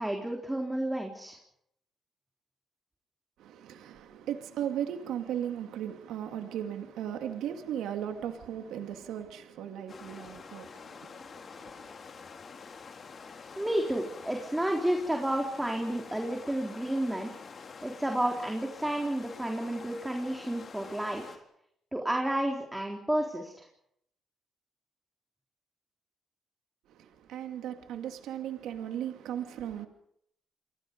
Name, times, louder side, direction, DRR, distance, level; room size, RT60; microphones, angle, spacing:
voice 1, 0.0-1.4 13.6-17.3 17.8-21.4 21.9-23.5, right 1 dB, 10° right, 3.9 m, -31 dB
voice 2, 3.4-11.9 26.9-29.9, right 10 dB, 85° right, 2.4 m, -37 dB
sound 1, 9.9-21.4, left 5 dB, 45° left, 3.9 m, -47 dB
29.5 x 24.0 x 5.3 m
cardioid pair, 90°, 0 cm